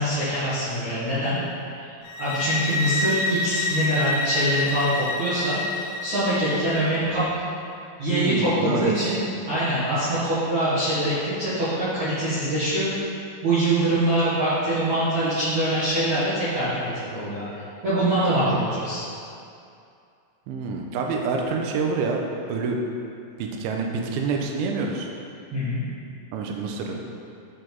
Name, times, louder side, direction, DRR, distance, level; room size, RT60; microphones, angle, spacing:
voice 1, 0.0-1.4 1.7-1.9 2.2-5.6 6.0-7.3 8.0-12.9 13.4-19.0 25.5-25.8, right 1 dB, 60° right, -14 dB, 2.0 m, -24 dB
sound 1, 2.0-6.9, left 2 dB, 85° left, 3.1 m, -28 dB
voice 2, 8.1-9.2 20.5-22.2 22.5-22.8 23.4-25.1 26.3-27.0, right 4 dB, 85° right, 1 dB, 2.8 m, -27 dB
11.0 x 4.8 x 3.9 m, 2.5 s
omnidirectional pair, 5.7 m